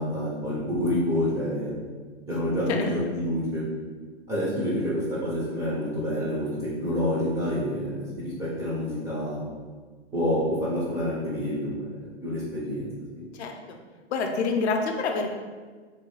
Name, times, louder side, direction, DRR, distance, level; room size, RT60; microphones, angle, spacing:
voice 1, 0.0-1.8 2.3-3.6 4.3-9.4 10.1-12.9 13.2-13.3, left 1 dB, 10° right, -8 dB, 0.4 m, -28 dB
voice 2, 13.4-13.8 14.1-15.4, left 4 dB, 70° left, 3 dB, 0.5 m, -27 dB
3.2 x 2.3 x 3.1 m, 1.5 s
hypercardioid pair, 135°, 35 cm